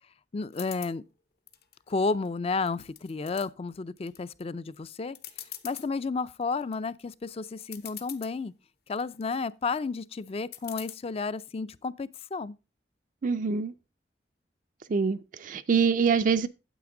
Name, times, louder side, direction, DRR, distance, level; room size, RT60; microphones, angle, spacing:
voice 1, 0.3-1.0 1.9-5.2 5.6-8.5 8.9-12.6, left 4 dB, 35° left, 0.4 m, -32 dB
sound 1, 0.5-0.9 1.5-2.3 2.7-3.5 4.0-4.4 4.8-4.9 5.1-5.9 6.4-6.8 7.3-7.4 7.6-8.3 8.9-9.4 10.5-10.9, left 11 dB, 65° left, 0.9 m, -43 dB
voice 2, 13.2-13.7 14.9-16.5, right 5 dB, 50° right, 0.4 m, -25 dB
9.3 x 7.8 x 3.8 m
head